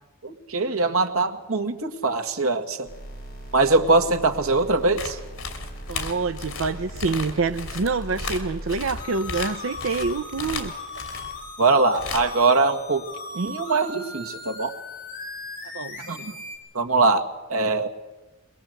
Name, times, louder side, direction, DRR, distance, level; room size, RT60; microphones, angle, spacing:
voice 1, 0.2-2.9 3.5-5.2 11.6-13.0 13.3-14.7 16.0-16.4 16.7-17.9, right 3 dB, 90° right, 5 dB, 1.8 m, -22 dB
sound 1, 2.8-16.6, left 1 dB, 40° left, 7.3 m, -38 dB
sound 2, 5.0-11.4 11.9-12.4 13.5-13.6, left 4 dB, 85° left, 3.2 m, -34 dB
voice 2, 5.9-10.7 15.7-16.0, right 4 dB, 70° right, 8 dB, 0.7 m, -26 dB
23.0 x 20.5 x 7.9 m, 1.1 s
head